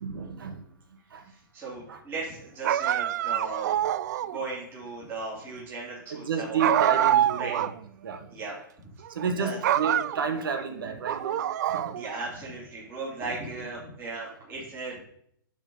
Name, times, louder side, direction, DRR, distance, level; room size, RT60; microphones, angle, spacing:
voice 1, 0.0-0.6 1.1-1.3 1.9-2.0 6.1-7.7 8.0-8.3 9.1-12.0, right 6 dB, 80° right, 7 dB, 1.5 m, -31 dB
voice 2, 1.2-3.8 4.2-6.6 7.0-7.1 7.4-7.5 8.3-8.5 9.4-9.6 11.9-15.0, right 3 dB, 20° right, -7 dB, 2.9 m, -37 dB
sound 1, 2.6-4.4 6.6-7.8 8.1-8.2 9.0-9.3 9.6-10.6 11.0-12.2, right 11 dB, 55° right, 0.3 m, -26 dB
10.0 x 4.1 x 5.5 m, 0.69 s
hypercardioid pair, 155°, 11 cm